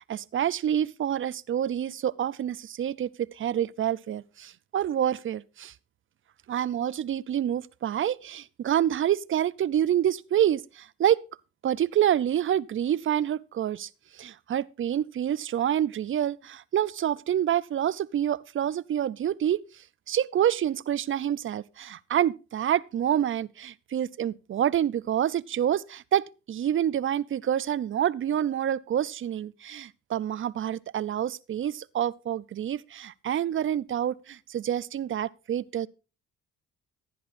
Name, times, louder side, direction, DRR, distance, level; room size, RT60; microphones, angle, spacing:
voice 1, 0.1-5.7 6.5-11.2 11.6-19.6 20.1-35.9, right 10 dB, 45° right, 0.5 m, -27 dB
15.5 x 10.0 x 2.5 m
cardioid pair, 90°, 30 cm